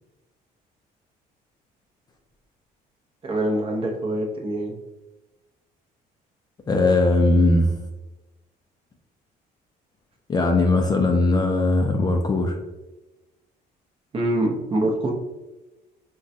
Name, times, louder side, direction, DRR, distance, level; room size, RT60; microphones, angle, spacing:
voice 1, 3.2-4.7 14.1-15.1, right 1 dB, 35° right, 0 dB, 0.7 m, -24 dB
voice 2, 6.7-7.8 10.3-12.6, left 2 dB, 25° left, 3 dB, 0.3 m, -19 dB
3.8 x 2.2 x 2.6 m, 1.1 s
cardioid pair, 110°, 17 cm